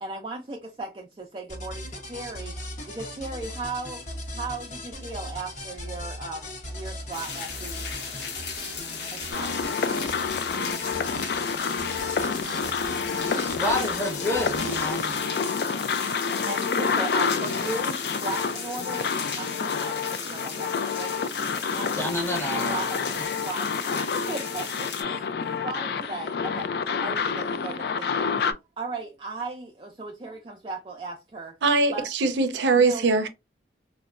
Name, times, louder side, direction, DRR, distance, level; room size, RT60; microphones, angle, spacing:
voice 1, 0.0-2.5 2.9-4.0 4.3-6.5 6.7-7.7 9.1-9.8 16.5-21.3 21.6-22.2 22.5-23.7 24.3-25.3 25.6-26.7 27.0-28.3 28.8-31.5 31.9-32.1 32.7-33.1, right 3 dB, 30° right, 0.4 m, -37 dB
sound 1, 1.5-15.2, left 1 dB, 45° left, 0.8 m, -39 dB
sound 2, 7.1-25.0, left 5 dB, 75° left, 0.9 m, -36 dB
sound 3, 9.3-28.5, left 5 dB, 60° left, 0.3 m, -28 dB
voice 2, 13.1-15.1 22.0-23.1, left 1 dB, 15° left, 0.8 m, -29 dB
voice 3, 31.6-33.3, right 3 dB, 80° right, 0.5 m, -21 dB
4.0 x 2.1 x 2.3 m
head